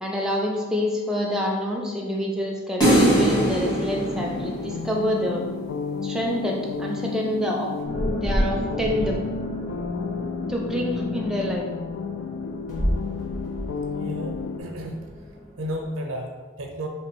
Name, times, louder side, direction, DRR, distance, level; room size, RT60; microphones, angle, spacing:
voice 1, 0.0-5.4 6.0-7.7 8.2-9.2 10.5-11.7, equal, 5° right, -2 dB, 0.5 m, -27 dB
sound 1, 2.8-5.2, right 1 dB, 20° left, 1.1 m, -21 dB
sound 2, 4.1-14.6, left 5 dB, 75° left, 0.3 m, -32 dB
sound 3, 7.8-15.8, equal, 40° left, 1.3 m, -31 dB
voice 2, 14.0-15.0 15.6-16.9, equal, 85° right, 3 dB, 0.5 m, -32 dB
3.3 x 3.0 x 4.5 m, 1.4 s
head